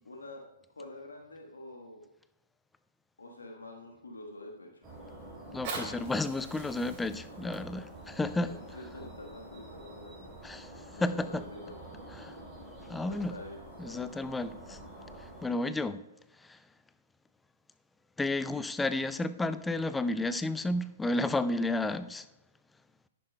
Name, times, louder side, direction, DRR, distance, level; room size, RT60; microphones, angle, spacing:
voice 1, 0.0-0.4 0.7-2.0 3.2-5.0 7.5-7.6 8.4-10.3 10.9-11.9 13.0-14.1, left 2 dB, 85° left, 1.3 m, -47 dB
sound 1, 4.8-15.5, right 1 dB, 15° right, 3.5 m, -48 dB
Fire, 5.4-10.4 11.0-11.1, right 3 dB, 40° right, 3.3 m, -45 dB
voice 2, 5.5-8.5 10.4-10.7 11.0-11.4 12.2-12.4 12.9-13.3 13.8-14.8 15.4-16.0 16.5-16.6 18.2-22.2, left 2 dB, 10° left, 0.4 m, -32 dB
11.0 x 10.5 x 2.2 m
hypercardioid pair, 120°, 0 cm